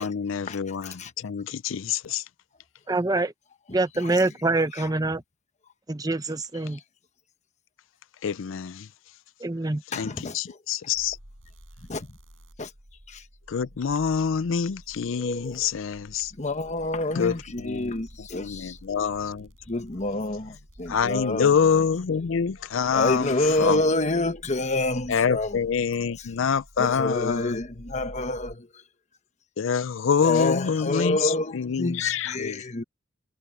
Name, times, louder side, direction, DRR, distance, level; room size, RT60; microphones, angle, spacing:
voice 1, 0.0-2.3 8.2-8.9 9.9-11.2 13.5-16.3 17.1-17.9 18.2-19.5 20.9-23.9 25.1-27.6 29.6-32.6, left 6 dB, 75° left, 0.5 m, -26 dB
voice 2, 2.9-3.3 3.7-5.2 5.9-6.8 9.4-9.8, right 2 dB, 20° right, 0.7 m, -25 dB
voice 3, 9.9-10.3 11.9-12.1 12.6-12.7 13.1-13.2 15.2-15.5 16.4-18.8 19.7-21.5 22.9-25.5 26.8-28.7 30.2-32.8, left 2 dB, 35° left, 1.2 m, -28 dB
sound 1, 10.9-28.6, equal, 80° right, 6.7 m, -50 dB
head